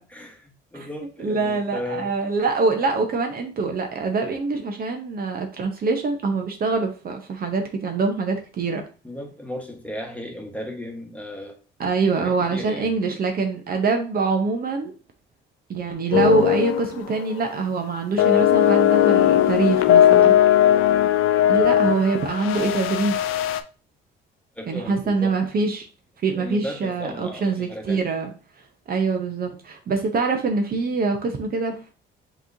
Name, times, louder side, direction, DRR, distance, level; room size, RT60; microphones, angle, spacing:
voice 1, 0.1-2.2 9.0-11.6 12.1-12.9 20.2-20.3 24.5-25.4 26.4-28.1, left 1 dB, 5° left, 1.2 m, -35 dB
voice 2, 1.2-8.8 11.8-14.9 15.7-20.3 21.5-23.2 24.7-25.9 26.2-28.3 28.9-31.9, right 4 dB, 45° right, 0.8 m, -24 dB
sound 1, 16.1-16.9 17.2-17.4 18.2-23.6, left 11 dB, 75° left, 0.4 m, -18 dB
5.9 x 3.1 x 2.7 m
cardioid pair, 85°, 21 cm